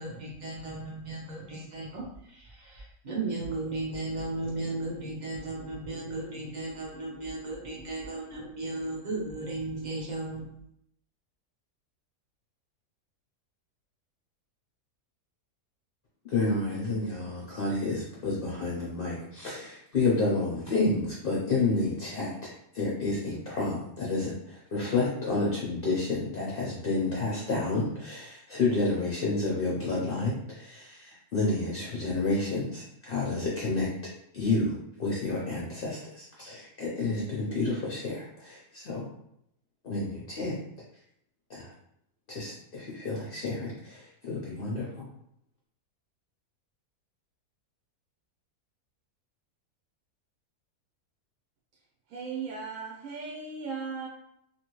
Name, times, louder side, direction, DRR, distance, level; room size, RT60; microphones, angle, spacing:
voice 1, 0.0-10.4, right 2 dB, 50° right, -3 dB, 0.5 m, -35 dB
voice 2, 16.2-39.0 39.8-40.6 41.5-41.7 42.3-45.1, left 3 dB, 60° left, -4 dB, 0.6 m, -30 dB
voice 3, 52.1-54.1, right 5 dB, 65° right, -3 dB, 0.9 m, -37 dB
2.9 x 2.6 x 3.0 m, 0.74 s
omnidirectional pair, 1.6 m